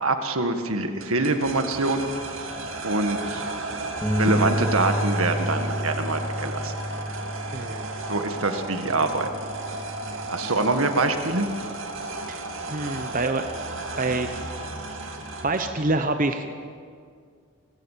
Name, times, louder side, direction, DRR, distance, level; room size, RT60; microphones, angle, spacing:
voice 1, 0.0-2.1 2.8-3.4 4.2-6.7 8.1-9.3 10.3-11.5, right 2 dB, 75° right, 7 dB, 1.8 m, -24 dB
sound 1, 1.0-15.8, right 2 dB, 60° right, 2.4 m, -34 dB
sound 2, 4.0-10.3, equal, 5° left, 1.9 m, -30 dB
voice 2, 7.5-7.9 12.3-12.4 12.7-13.4 14.0-14.3 15.4-16.5, right 2 dB, 40° right, 7 dB, 1.0 m, -26 dB
29.5 x 15.0 x 7.5 m, 2.1 s
head